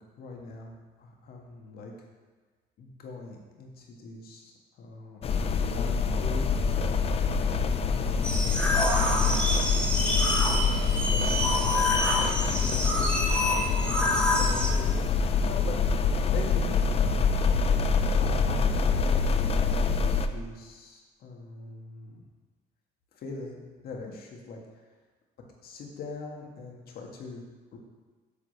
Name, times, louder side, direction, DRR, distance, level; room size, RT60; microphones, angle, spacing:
voice 1, 0.0-1.9 2.8-5.2 5.5-6.5 7.3-8.6 8.9-9.5 10.3-11.9 12.3-16.8 17.8-22.2 23.1-24.8 25.6-27.4 27.7-27.8, left 3 dB, 65° left, 0 dB, 1.6 m, -42 dB
sound 1, 5.2-20.3, left 5 dB, 35° left, 0.5 m, -25 dB
sound 2, 8.2-14.7, left 1 dB, 5° left, 1.5 m, -27 dB
8.3 x 3.9 x 6.6 m, 1.4 s
cardioid pair, 110°, 17 cm